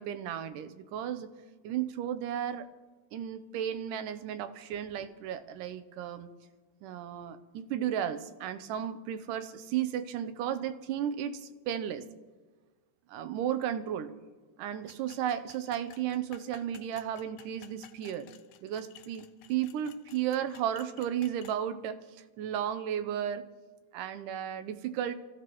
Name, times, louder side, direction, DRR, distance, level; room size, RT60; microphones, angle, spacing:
voice 1, 0.0-1.3 1.6-2.7 3.1-6.3 6.8-12.1 13.1-14.1 14.6-18.3 18.6-22.0 22.4-23.5 23.9-25.1, right 10 dB, 85° right, 11 dB, 2.4 m, -34 dB
sound 1, 14.9-21.6, left 11 dB, 85° left, 2.3 m, -54 dB
27.5 x 15.0 x 3.0 m, 1.4 s
omnidirectional pair, 3.6 m